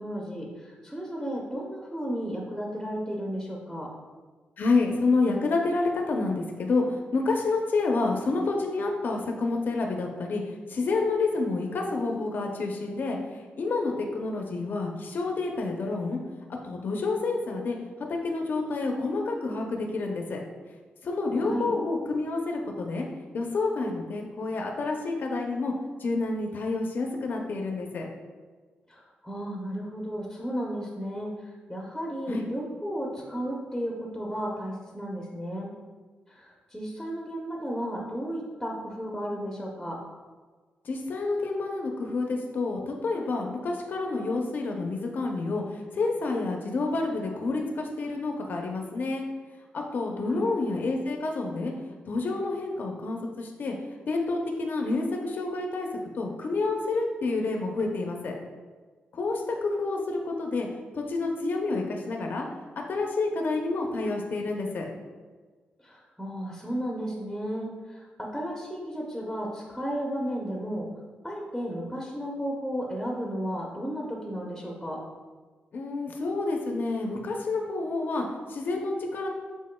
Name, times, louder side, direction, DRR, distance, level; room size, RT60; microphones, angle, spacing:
voice 1, 0.0-3.9 21.4-21.7 28.9-35.7 36.3-36.5 36.7-40.0 50.2-50.4 65.8-68.0 68.3-70.9 71.2-75.0, equal, ahead, -2 dB, 0.7 m, -34 dB
voice 2, 4.6-10.4 10.7-13.2 13.6-16.2 16.6-17.8 18.2-20.4 21.0-23.1 23.3-25.7 26.0-28.1 32.3-32.5 40.9-45.6 45.9-49.3 49.7-51.7 52.1-53.8 54.1-55.9 56.2-58.4 59.1-60.7 60.9-62.5 62.9-64.9 75.7-79.3, left 3 dB, 55° left, 1 dB, 0.6 m, -28 dB
6.3 x 3.5 x 2.2 m, 1.4 s
cardioid pair, 90°, 4 cm